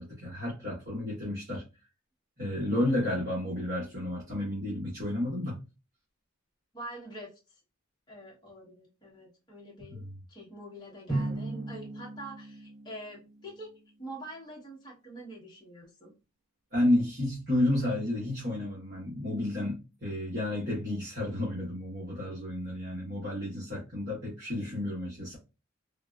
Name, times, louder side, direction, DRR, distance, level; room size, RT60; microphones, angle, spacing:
voice 1, 0.0-1.6 2.4-5.6 9.9-10.1 16.7-25.4, left 1 dB, 45° right, 1.0 m, -31 dB
voice 2, 2.4-3.0 6.7-7.3 8.1-13.7 14.0-16.1, right 1 dB, 20° left, 0.9 m, -45 dB
Drum, 11.1-13.8, right 2 dB, ahead, 1.1 m, -36 dB
3.5 x 2.3 x 2.2 m
head